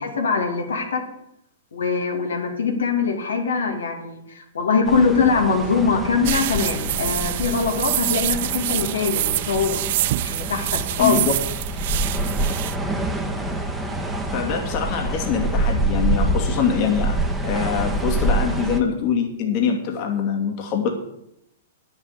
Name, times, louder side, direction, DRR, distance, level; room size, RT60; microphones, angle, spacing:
voice 1, 0.0-1.0 1.7-9.8 10.2-11.3, left 5 dB, 80° left, 3 dB, 2.6 m, -22 dB
sound 1, 4.8-18.8, right 1 dB, 5° right, 1.6 m, -26 dB
sound 2, 6.2-12.7, right 15 dB, 55° right, 0.4 m, -26 dB
voice 2, 11.0-11.3 14.3-17.2 17.4-20.9, left 7 dB, 45° left, 3 dB, 2.3 m, -24 dB
9.7 x 7.6 x 8.1 m, 0.79 s
hypercardioid pair, 120°, 0 cm